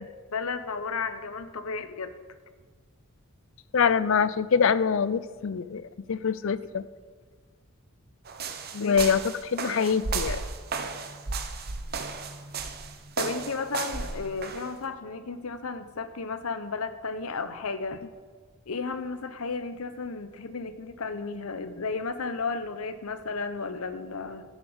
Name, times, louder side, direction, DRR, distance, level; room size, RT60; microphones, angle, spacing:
voice 1, 0.0-2.1 8.8-8.9 13.2-18.0 18.7-24.4, left 4 dB, 75° left, 11 dB, 0.8 m, -33 dB
voice 2, 3.7-6.8 8.7-10.4, left 6 dB, 60° left, 16 dB, 0.4 m, -25 dB
sound 1, 8.3-14.7, right 4 dB, 45° right, 0.8 m, -34 dB
11.0 x 8.2 x 6.3 m, 1.5 s
head